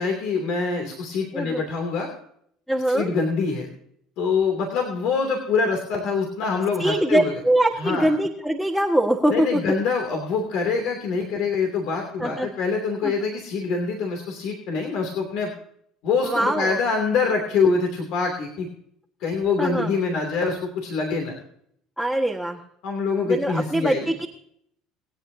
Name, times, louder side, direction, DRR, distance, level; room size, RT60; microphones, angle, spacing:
voice 1, 0.0-2.1 2.9-3.7 4.2-7.3 7.8-8.1 9.3-15.5 16.0-18.7 19.2-21.4 22.8-24.1, left 4 dB, 65° left, 2 dB, 2.8 m, -25 dB
voice 2, 2.7-3.1 6.8-9.6 12.2-12.5 13.0-13.1 16.2-16.8 19.6-19.9 22.0-22.6 23.2-24.3, right 1 dB, ahead, 2 dB, 1.7 m, -23 dB
24.5 x 9.0 x 2.8 m, 0.68 s
supercardioid pair, 80°, 0 cm